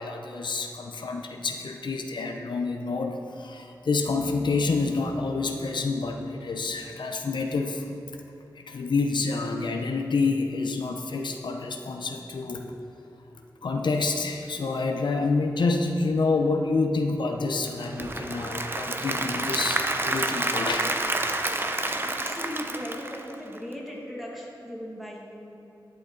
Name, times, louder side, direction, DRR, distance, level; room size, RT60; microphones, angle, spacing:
voice 1, 0.0-7.9 8.7-12.6 13.6-20.9, left 3 dB, 80° left, 3 dB, 0.7 m, -28 dB
Applause / Crowd, 17.7-23.7, right 2 dB, 30° right, 0.6 m, -29 dB
voice 2, 22.0-25.6, equal, ahead, -4 dB, 1.9 m, -38 dB
11.5 x 9.2 x 3.9 m, 3.0 s
wide cardioid pair, 90°, 8 cm